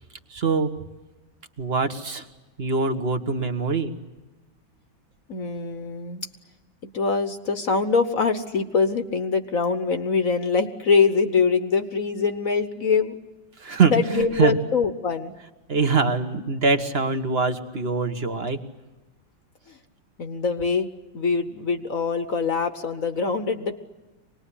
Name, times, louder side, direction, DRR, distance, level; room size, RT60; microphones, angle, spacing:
voice 1, 0.3-0.7 1.6-2.2 2.6-3.9 13.6-14.5 15.7-18.6, right 4 dB, 35° right, 8 dB, 1.4 m, -23 dB
voice 2, 5.3-6.3 6.9-13.2 13.9-15.3 19.7-19.8 20.2-20.9 21.1-23.8, left 5 dB, 50° left, 8 dB, 1.4 m, -23 dB
25.5 x 20.0 x 10.0 m, 1.1 s
omnidirectional pair, 2.1 m